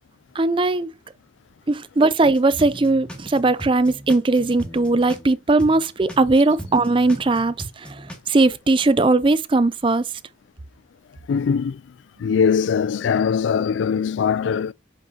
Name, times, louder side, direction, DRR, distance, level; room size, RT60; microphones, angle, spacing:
voice 1, 0.3-0.9 1.7-10.1, right 2 dB, 25° right, 0.5 m, -19 dB
sound 1, 2.2-5.3 5.6-8.2, equal, 5° left, 1.9 m, -38 dB
voice 2, 11.3-14.7, left 6 dB, 85° left, 0.3 m, -21 dB
7.9 x 5.5 x 2.8 m
head